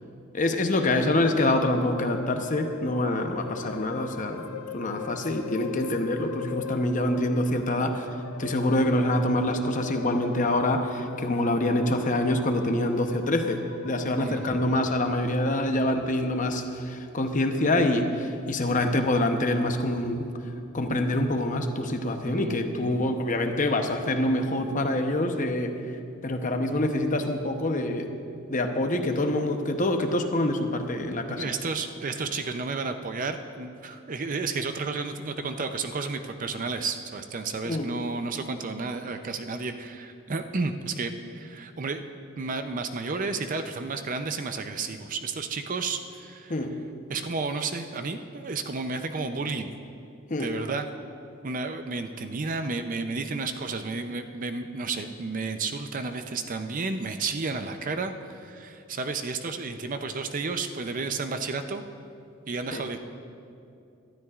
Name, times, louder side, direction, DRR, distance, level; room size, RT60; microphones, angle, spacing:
voice 1, 0.3-4.5 4.7-8.1 8.4-20.3 20.7-25.7 26.2-28.1 28.5-31.4 37.6-37.9 46.5-46.7 50.3-50.5 62.7-62.8, left 1 dB, 35° left, 5 dB, 0.8 m, -26 dB
sound 1, 1.4-15.0, left 5 dB, 65° left, 0.5 m, -40 dB
voice 2, 14.2-14.6 22.3-23.0 31.3-42.0 42.4-46.6 47.1-49.7 50.4-50.9 51.4-61.8 62.5-63.0, right 4 dB, 35° right, 8 dB, 0.5 m, -32 dB
23.5 x 12.5 x 2.4 m, 2.5 s
head